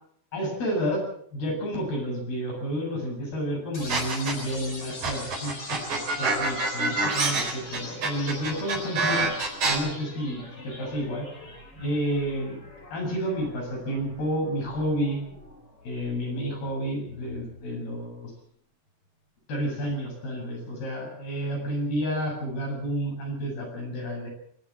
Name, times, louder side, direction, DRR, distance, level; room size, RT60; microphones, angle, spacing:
voice 1, 0.3-1.0 1.3-5.8 6.2-9.4 9.6-11.3 11.8-12.6 12.9-15.2 15.8-18.3 19.5-24.3, equal, 70° left, 0 dB, 9.5 m, -30 dB
sound 1, 3.7-17.7, left 2 dB, 35° left, 6.2 m, -43 dB
sound 2, 3.9-4.6 5.0-9.8, right 3 dB, 50° right, 5.2 m, -26 dB
21.5 x 16.5 x 7.3 m, 0.65 s
omnidirectional pair, 4.7 m